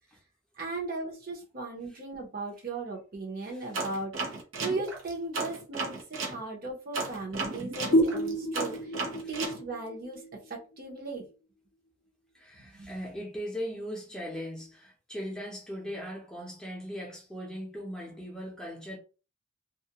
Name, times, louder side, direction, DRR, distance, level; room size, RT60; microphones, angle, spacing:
voice 1, 0.6-9.0 9.3-11.2 12.6-12.9, right 2 dB, 50° right, 0.8 m, -37 dB
sound 1, 3.7-6.4 6.9-9.6, right 3 dB, 90° right, 0.7 m, -34 dB
sound 2, 7.9-11.3, equal, 50° left, 0.4 m, -30 dB
voice 2, 12.3-19.0, equal, 5° left, 0.5 m, -39 dB
2.4 x 2.2 x 2.8 m
head